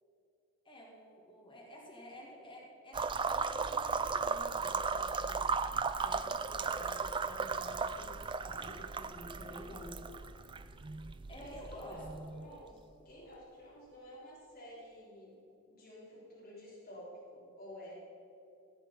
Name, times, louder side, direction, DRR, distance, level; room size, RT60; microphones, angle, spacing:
voice 1, 0.6-5.5 5.9-10.4 11.3-12.2, left 1 dB, 20° left, -3 dB, 2.1 m, -51 dB
sound 1, 2.9-12.7, right 5 dB, 20° right, 0.3 m, -36 dB
voice 2, 11.3-12.0 12.3-15.4 15.7-17.9, equal, 45° left, -8 dB, 3.7 m, -51 dB
17.0 x 8.3 x 5.6 m, 2.8 s
head